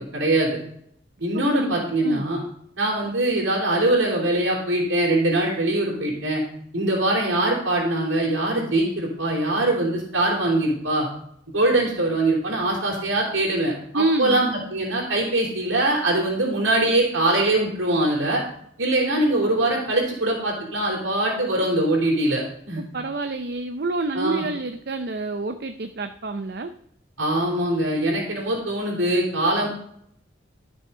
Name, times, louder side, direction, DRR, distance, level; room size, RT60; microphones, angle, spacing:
voice 1, 0.1-0.5 1.2-2.4 2.8-6.4 6.7-11.1 11.5-18.4 18.8-22.8 24.1-24.4 27.2-29.7, right 1 dB, 80° right, -3 dB, 3.7 m, -22 dB
voice 2, 1.3-2.3 13.9-14.4 22.8-26.7, right 2 dB, 55° right, 8 dB, 0.6 m, -28 dB
13.0 x 6.4 x 5.6 m, 0.67 s
head